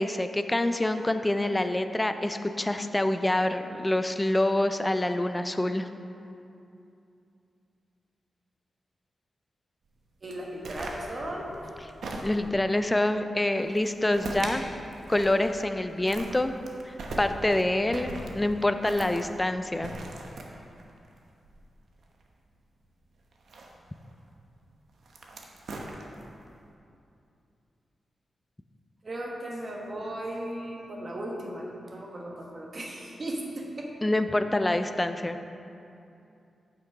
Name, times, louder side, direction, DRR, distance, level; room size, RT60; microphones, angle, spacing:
voice 1, 0.0-5.9 12.2-14.7 15.1-16.6 16.8-19.9 34.0-35.4, left 1 dB, 15° left, 8 dB, 0.4 m, -26 dB
voice 2, 10.2-11.9 29.0-33.9, right 1 dB, 40° right, -1 dB, 1.2 m, -36 dB
sound 1, 10.3-12.7 13.6-14.6 14.9-15.8 16.0-22.2 23.3-24.1 24.9-26.4, right 2 dB, 75° right, 0.9 m, -40 dB
8.3 x 5.9 x 4.7 m, 2.7 s
wide cardioid pair, 90°, 0 cm